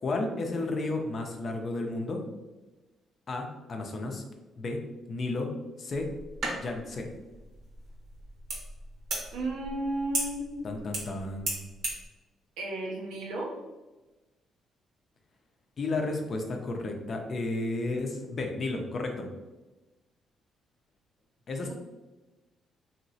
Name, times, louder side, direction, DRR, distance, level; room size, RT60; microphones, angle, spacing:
voice 1, 0.0-2.2 3.3-4.2 4.6-5.5 5.8-6.1 6.6-7.1 10.6-11.7 15.8-19.3 21.5-21.7, left 2 dB, 50° left, 3 dB, 0.6 m, -32 dB
sound 1, 5.9-12.1, right 2 dB, 70° right, 1.1 m, -37 dB
voice 2, 9.3-10.5 12.6-13.5 21.7-21.8, right 1 dB, 90° right, -1 dB, 0.7 m, -33 dB
2.9 x 2.9 x 2.7 m, 1.1 s
cardioid pair, 90°, 0 cm